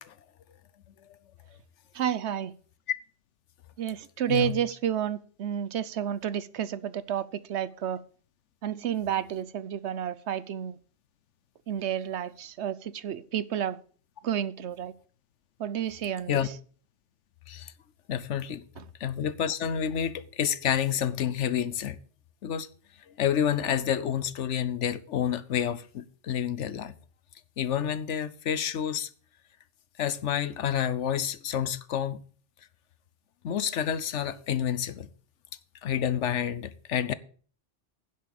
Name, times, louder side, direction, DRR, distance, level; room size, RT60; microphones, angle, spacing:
voice 1, 1.9-2.5 3.8-8.0 8.6-10.8 11.7-13.8 14.2-14.9 15.6-16.4 18.8-18.9, right 10 dB, 70° right, 1.0 m, -31 dB
voice 2, 18.1-18.6 19.0-22.0 22.4-22.7 23.1-26.9 27.6-29.1 30.0-32.2 33.4-35.1 35.8-37.1, left 9 dB, 80° left, 1.1 m, -29 dB
11.0 x 7.5 x 6.9 m
omnidirectional pair, 1.2 m